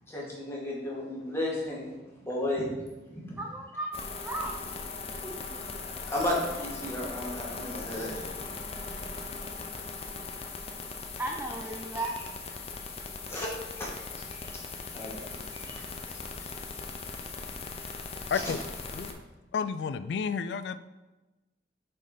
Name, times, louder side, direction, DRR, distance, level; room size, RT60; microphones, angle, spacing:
voice 1, 0.1-1.9 2.2-2.7 3.1-3.4 6.1-8.2 11.9-12.1 13.3-13.5 13.8-13.9 14.3-14.6 14.9-15.8 17.8-17.9 18.4-18.5, left 1 dB, 15° left, -6 dB, 1.9 m, -34 dB
voice 2, 3.4-4.5 5.2-5.6 11.2-12.1, right 2 dB, 10° right, 0 dB, 0.5 m, -35 dB
sound 1, 3.9-19.1, left 4 dB, 35° left, 0.6 m, -39 dB
voice 3, 19.5-20.8, left 6 dB, 65° left, 13 dB, 0.3 m, -31 dB
6.7 x 4.4 x 5.0 m, 1.1 s
head